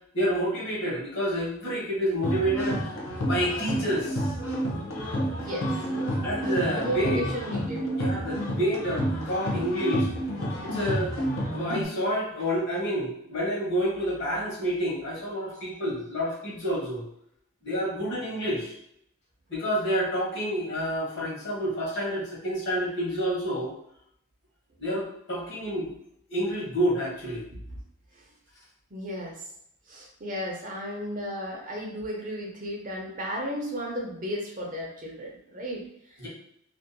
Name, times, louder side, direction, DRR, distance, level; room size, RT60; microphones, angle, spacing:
voice 1, 0.1-3.0 3.3-4.3 6.2-7.2 8.0-10.1 10.6-11.1 11.5-17.0 17.6-18.7 19.5-23.7 24.8-25.9 26.3-27.4 36.2-36.3, equal, 55° left, -5 dB, 1.0 m, -28 dB
sound 1, 2.2-11.8, equal, 80° left, 0.6 m, -30 dB
voice 2, 5.4-5.7 6.7-7.9 15.5-15.8 27.5-27.6 28.1-28.3 28.9-29.4 29.9-36.3, equal, 40° right, -1 dB, 0.5 m, -34 dB
2.6 x 2.2 x 2.6 m, 0.73 s
head